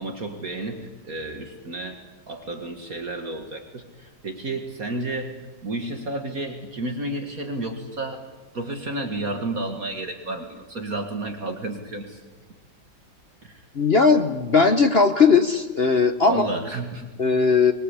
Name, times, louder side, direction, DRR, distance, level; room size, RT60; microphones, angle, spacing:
voice 1, 0.0-5.3 5.6-8.2 8.5-12.2 13.4-13.6 16.3-17.1, right 2 dB, 50° right, 4 dB, 2.3 m, -31 dB
voice 2, 13.7-16.5 17.2-17.7, left 4 dB, 40° left, 8 dB, 1.0 m, -18 dB
24.5 x 22.5 x 8.3 m, 1.3 s
omnidirectional pair, 2.0 m